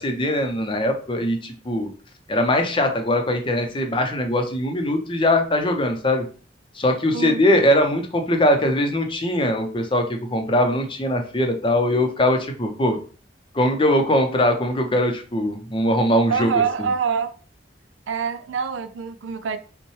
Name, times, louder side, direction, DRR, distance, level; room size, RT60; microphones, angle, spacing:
voice 1, 0.0-1.9 2.3-6.2 6.8-13.0 13.5-16.5 16.8-16.9, left 1 dB, 25° left, 0.6 m, -21 dB
voice 2, 7.1-7.5 16.3-17.3 18.1-19.6, right 6 dB, 85° right, 0.4 m, -25 dB
5.5 x 2.2 x 3.1 m
head